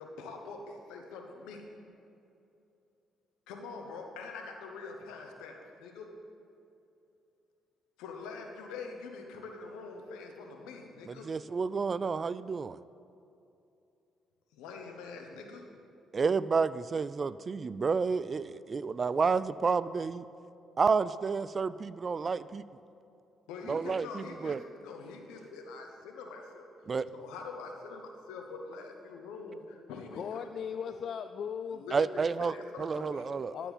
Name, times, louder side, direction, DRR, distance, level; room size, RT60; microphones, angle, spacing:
voice 1, 0.0-1.6 3.5-6.1 8.0-11.3 14.5-15.6 23.5-26.7 27.1-30.5 30.8-31.0 31.7-33.3, left 4 dB, 85° left, 3 dB, 1.1 m, -44 dB
voice 2, 11.1-12.8 16.1-20.2 20.8-22.6 23.7-24.6 26.9-27.1 31.9-32.5 32.8-33.5, right 5 dB, 40° right, 17 dB, 0.3 m, -30 dB
voice 3, 30.1-31.8 33.5-33.7, left 7 dB, 60° left, 9 dB, 0.3 m, -37 dB
13.0 x 4.5 x 7.2 m, 2.7 s
supercardioid pair, 65°, 0 cm